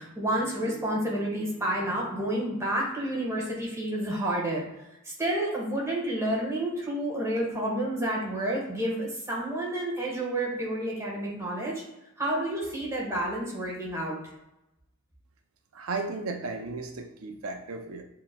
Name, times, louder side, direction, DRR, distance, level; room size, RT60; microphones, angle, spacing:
voice 1, 0.0-4.6 5.0-11.8 12.2-14.2, right 1 dB, 15° right, -4 dB, 1.3 m, -30 dB
voice 2, 15.7-18.0, right 3 dB, 80° right, 5 dB, 0.5 m, -35 dB
7.3 x 2.9 x 2.2 m, 0.90 s
head